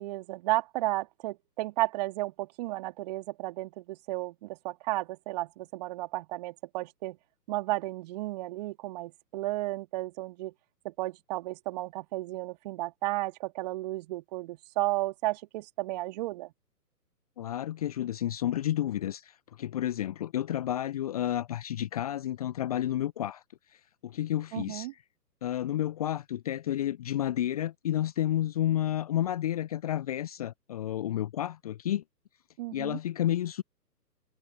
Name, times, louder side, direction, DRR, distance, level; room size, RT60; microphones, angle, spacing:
voice 1, 0.0-7.2 7.5-10.5 10.8-16.5 24.5-24.9 32.6-33.0, right 19 dB, 25° right, 2.9 m, -33 dB
voice 2, 17.4-23.4 23.7-24.9 25.4-32.0 32.7-33.6, left 12 dB, 20° left, 1.1 m, -31 dB
figure-of-eight pair, 135°, 49 cm